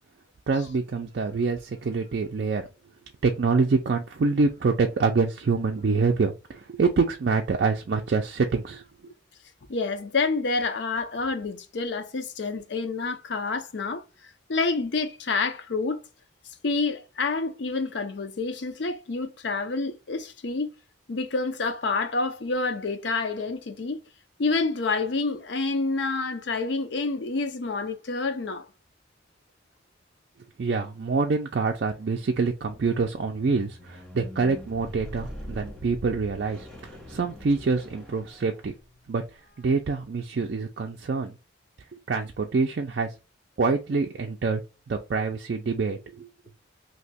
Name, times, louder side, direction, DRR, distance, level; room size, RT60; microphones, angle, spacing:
voice 1, 0.5-2.6 3.2-8.8 30.6-36.7 37.1-38.7 39.1-39.2 39.6-41.4 41.9-43.1 43.6-44.6 44.9-46.3, right 4 dB, 55° right, 0.4 m, -26 dB
voice 2, 9.7-14.0 14.5-16.0 16.6-20.7 21.1-24.0 24.4-28.7, left 3 dB, 65° left, 0.5 m, -28 dB
Squeak, 32.6-39.0 39.7-39.8, equal, 5° left, 0.8 m, -43 dB
2.8 x 2.2 x 4.0 m
head